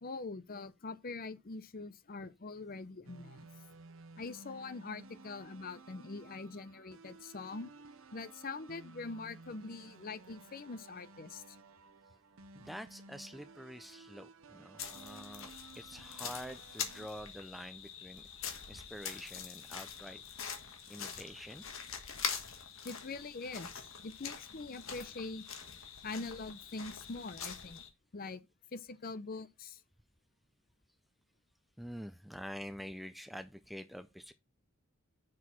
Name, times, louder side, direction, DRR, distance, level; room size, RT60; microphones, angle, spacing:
voice 1, 0.0-3.5 4.2-7.7 8.1-11.6 22.8-25.4 26.0-27.8 28.1-28.4 28.7-29.8, left 3 dB, 45° left, 0.6 m, -43 dB
sound 1, 3.0-17.1, right 3 dB, 75° right, 0.7 m, -56 dB
voice 2, 12.5-18.2 18.7-20.2 20.9-21.6 31.8-34.3, equal, ahead, 0.4 m, -47 dB
sound 2, 14.8-27.9, left 7 dB, 75° left, 1.5 m, -44 dB
6.3 x 4.6 x 5.5 m
head